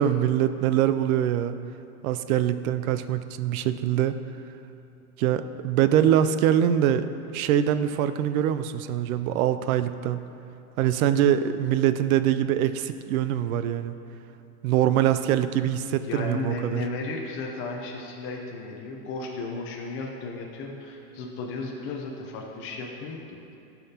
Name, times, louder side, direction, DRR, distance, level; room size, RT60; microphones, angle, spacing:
voice 1, 0.0-1.6 2.0-4.1 5.2-10.3 10.8-13.9 14.6-16.8, right 10 dB, 70° right, 11 dB, 0.5 m, -23 dB
voice 2, 15.9-23.6, left 3 dB, 30° left, 0 dB, 0.6 m, -34 dB
11.5 x 5.8 x 2.8 m, 2.8 s
supercardioid pair, 140°, 45 cm